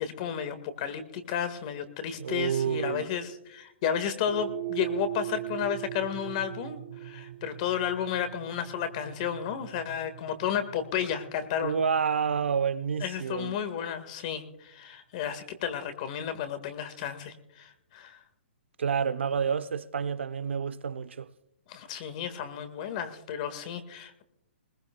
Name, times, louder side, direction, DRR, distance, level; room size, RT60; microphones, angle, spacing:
voice 1, 0.0-11.8 13.0-18.2 21.7-24.2, left 8 dB, 40° left, 1.6 m, -32 dB
voice 2, 2.2-3.1 11.6-13.6 18.8-21.3, right 6 dB, 85° right, 0.8 m, -29 dB
sound 1, 4.2-12.7, right 16 dB, 30° right, 0.8 m, -40 dB
20.5 x 19.0 x 2.2 m
hypercardioid pair, 155°, 6 cm